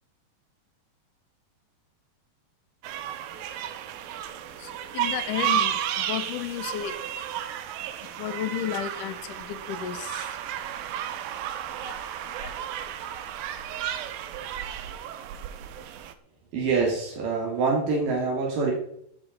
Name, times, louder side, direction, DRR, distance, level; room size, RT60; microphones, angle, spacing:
sound 1, 2.8-16.1, right 10 dB, 85° right, 2.7 m, -33 dB
voice 1, 4.6-7.0 8.2-10.3 12.3-12.6, left 11 dB, 70° left, 10 dB, 2.3 m, -33 dB
voice 2, 11.7-12.1 16.5-18.7, right 4 dB, 70° right, -2 dB, 4.1 m, -26 dB
12.5 x 9.0 x 5.2 m, 0.71 s
omnidirectional pair, 4.1 m